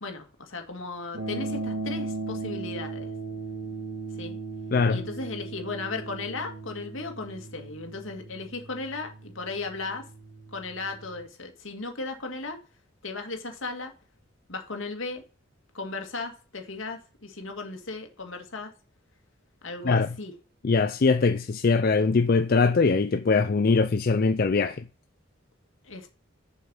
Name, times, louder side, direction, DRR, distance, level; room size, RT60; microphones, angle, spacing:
voice 1, 0.0-3.1 4.2-4.4 4.9-10.0 10.5-12.6 13.0-13.9 14.5-15.2 15.7-18.7 19.6-20.3 25.8-26.1, left 3 dB, 75° left, 2.2 m, -36 dB
sound 1, 1.1-11.2, right 3 dB, 70° right, 2.1 m, -37 dB
voice 2, 4.7-5.0 19.8-20.1 20.6-24.9, left 4 dB, 45° left, 0.4 m, -22 dB
7.3 x 6.1 x 5.5 m
head